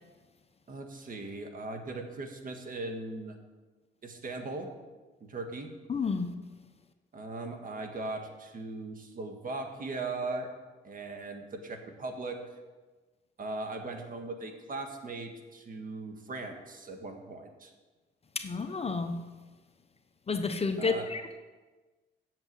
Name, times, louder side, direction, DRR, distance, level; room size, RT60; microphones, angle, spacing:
voice 1, 0.7-3.3 4.0-4.7 5.2-5.7 7.1-10.5 10.8-12.4 13.4-17.7 20.8-21.1, right 3 dB, 45° right, 4 dB, 1.7 m, -39 dB
voice 2, 5.9-6.3 18.4-19.2 20.3-21.2, left 4 dB, 30° left, 7 dB, 0.8 m, -30 dB
7.9 x 7.1 x 8.3 m, 1.3 s
cardioid pair, 90°, 20 cm